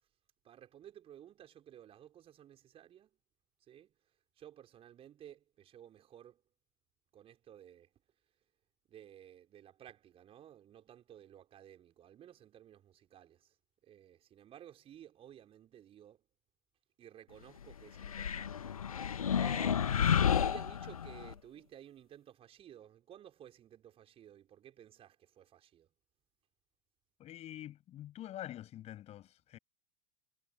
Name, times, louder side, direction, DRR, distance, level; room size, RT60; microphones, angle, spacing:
voice 1, 0.4-3.2 3.7-3.9 4.4-6.4 7.1-7.9 8.9-13.5 13.8-16.2 17.0-20.1 20.3-25.9, right 10 dB, 30° right, 5.2 m, -55 dB
sound 1, 18.0-21.3, left 8 dB, 75° left, 1.1 m, -31 dB
voice 2, 27.2-29.6, left 13 dB, 35° left, 6.5 m, -46 dB
figure-of-eight pair, 85°, 18 cm